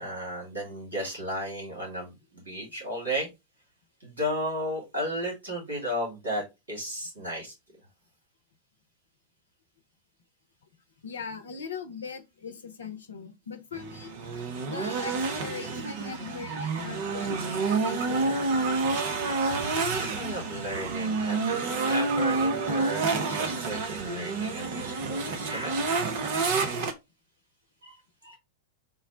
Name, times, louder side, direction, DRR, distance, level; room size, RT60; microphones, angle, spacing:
voice 1, 0.0-3.3 4.0-7.5 19.5-25.8 27.8-28.4, equal, 80° right, 2.4 m, -34 dB
voice 2, 11.0-14.1 14.7-19.0, left 5 dB, 70° left, 0.6 m, -40 dB
sound 1, 13.7-26.9, right 3 dB, 50° right, 0.6 m, -29 dB
3.8 x 2.1 x 3.7 m
figure-of-eight pair, 90°, 0 cm